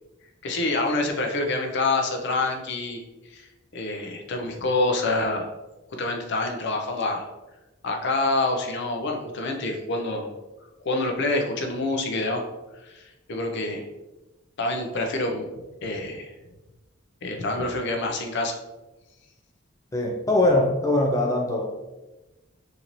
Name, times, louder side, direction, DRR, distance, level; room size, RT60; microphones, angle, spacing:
voice 1, 0.4-3.0 3.3-3.5 3.7-5.5 6.0-7.3 7.8-10.3 10.8-12.4 12.8-13.9 14.6-15.5 15.8-16.3 17.2-18.6, left 2 dB, 60° left, 3 dB, 0.6 m, -26 dB
voice 2, 19.9-21.8, left 1 dB, 15° left, 0 dB, 0.3 m, -22 dB
3.9 x 2.7 x 3.0 m, 1.1 s
head